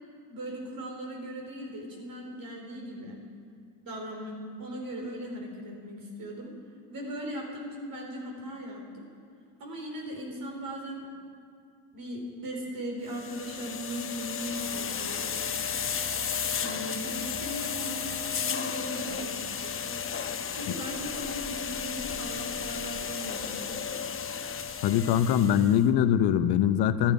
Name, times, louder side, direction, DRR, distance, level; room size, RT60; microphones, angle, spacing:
voice 1, 0.3-3.2 3.8-6.5 6.9-9.1 9.6-11.1 11.9-15.5 16.6-20.0 20.5-23.6, equal, 55° right, 0 dB, 4.4 m, -38 dB
sound 1, 13.1-25.8, left 7 dB, 30° left, 1.0 m, -34 dB
voice 2, 24.8-27.1, left 9 dB, 65° left, 11 dB, 0.8 m, -23 dB
14.5 x 12.0 x 5.4 m, 2.2 s
supercardioid pair, 90°, 42 cm